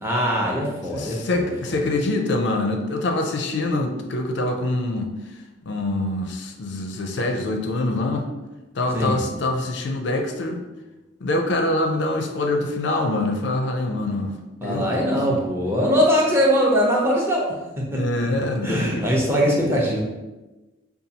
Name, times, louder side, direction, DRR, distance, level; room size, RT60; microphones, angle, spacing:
voice 1, 0.0-1.8 8.9-9.2 14.6-18.0 18.6-20.0, equal, 10° right, -3 dB, 0.6 m, -22 dB
voice 2, 0.9-5.1 5.7-8.3 8.7-10.6 11.2-14.3 14.6-15.4 17.9-19.1, left 2 dB, 60° left, 4 dB, 0.4 m, -25 dB
5.2 x 2.3 x 2.8 m, 1.1 s
head